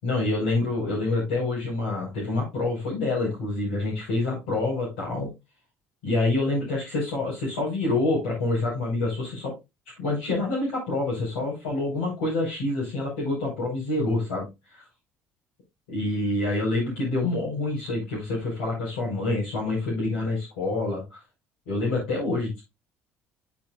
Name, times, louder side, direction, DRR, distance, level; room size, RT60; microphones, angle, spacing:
voice 1, 0.0-5.3 6.0-9.5 10.0-14.8 15.9-21.2 21.7-22.6, left 2 dB, 85° left, -6 dB, 5.8 m, -27 dB
10.5 x 7.4 x 2.5 m, 0.23 s
supercardioid pair, 70°, 6 cm